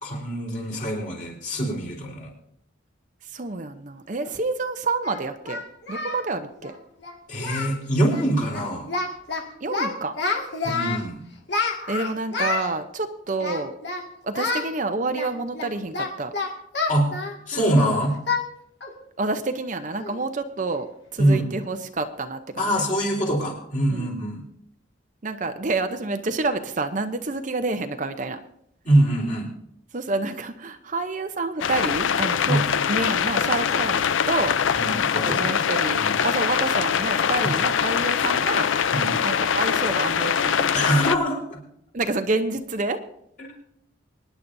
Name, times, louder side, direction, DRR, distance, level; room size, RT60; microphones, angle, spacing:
voice 1, 0.0-2.3 7.3-8.9 10.6-11.2 16.9-17.1 17.5-18.2 21.2-21.5 22.6-24.4 28.8-29.5 32.5-32.6 34.8-35.6 36.0-36.2 38.9-39.1 40.7-41.6 43.4-43.6, right 1 dB, 40° left, -2 dB, 4.0 m, -24 dB
voice 2, 3.2-5.6 5.9-6.8 9.6-10.2 11.9-13.8 14.2-16.3 19.2-20.9 21.1-22.8 23.9-24.1 25.2-28.4 29.9-32.6 32.9-34.6 35.3-38.7 39.2-40.9 41.9-43.0, right 3 dB, 40° right, 7 dB, 0.7 m, -28 dB
Singing, 4.2-4.3 5.0-6.2 6.5-6.7 7.0-7.1 7.4-7.8 8.0-8.3 8.5-9.4 9.7-11.0 11.5-12.7 13.4-14.0 14.3-14.7 15.1-17.8 18.3-18.5 18.8-19.0 19.4-19.5 20.0-20.3, left 4 dB, 60° left, 2.0 m, -28 dB
sound 1, 31.6-41.2, left 7 dB, 85° left, 0.5 m, -23 dB
25.0 x 10.5 x 2.7 m, 0.73 s
head